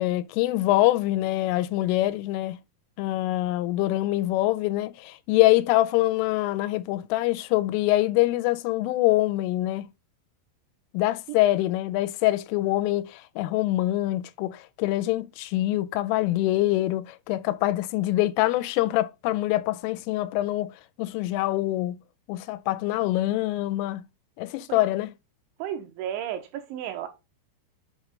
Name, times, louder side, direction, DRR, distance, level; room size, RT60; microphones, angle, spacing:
voice 1, 0.0-2.6 3.0-9.9 10.9-22.0 22.3-24.1 24.4-25.1, left 16 dB, 85° left, 3.1 m, -25 dB
voice 2, 25.6-27.1, right 10 dB, 75° right, 3.1 m, -33 dB
7.9 x 3.2 x 5.1 m
omnidirectional pair, 5.7 m